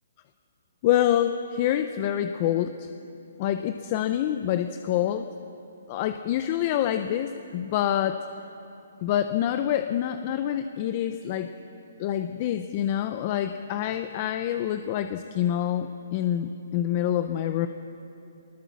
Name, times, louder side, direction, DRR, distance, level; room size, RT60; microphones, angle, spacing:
voice 1, 0.8-2.9 3.4-5.3 5.9-8.3 9.0-11.5 12.0-17.7, left 11 dB, 30° left, 9 dB, 0.6 m, -26 dB
19.5 x 19.5 x 7.1 m, 2.8 s
hypercardioid pair, 165°, 0 cm